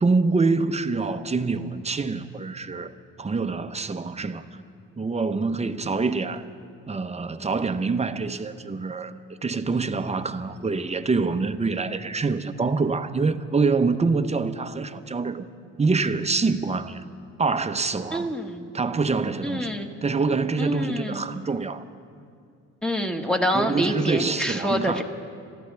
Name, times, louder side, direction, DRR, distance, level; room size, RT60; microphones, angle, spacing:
voice 1, 0.0-2.9 3.2-4.6 5.0-6.5 6.9-9.1 9.4-15.5 15.8-17.0 17.4-18.3 18.7-19.7 20.0-21.8 23.5-25.0, right 4 dB, 20° right, 9 dB, 0.8 m, -25 dB
voice 2, 18.1-18.7 19.4-19.9 20.6-21.2 22.8-25.0, equal, 5° left, 4 dB, 1.5 m, -26 dB
27.0 x 14.0 x 3.4 m, 2.4 s
cardioid pair, 90°, 30 cm